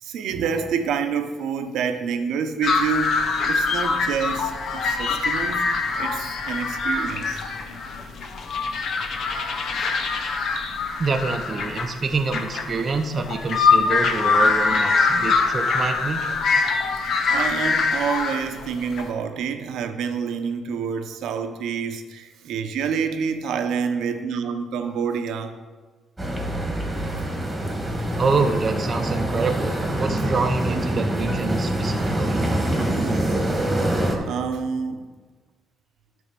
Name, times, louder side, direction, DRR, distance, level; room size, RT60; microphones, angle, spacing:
voice 1, 0.0-5.6 6.0-7.4 9.7-9.8 17.3-25.6 34.2-35.0, right 6 dB, 80° right, 7 dB, 0.8 m, -27 dB
sound 1, 2.6-19.1, left 4 dB, 65° left, 0.8 m, -23 dB
voice 2, 11.0-16.2 28.2-32.4, right 4 dB, 40° right, 5 dB, 0.7 m, -26 dB
sound 2, 26.2-34.2, right 1 dB, 10° right, 1.8 m, -25 dB
10.0 x 3.5 x 6.8 m, 1.4 s
cardioid pair, 90°, 0 cm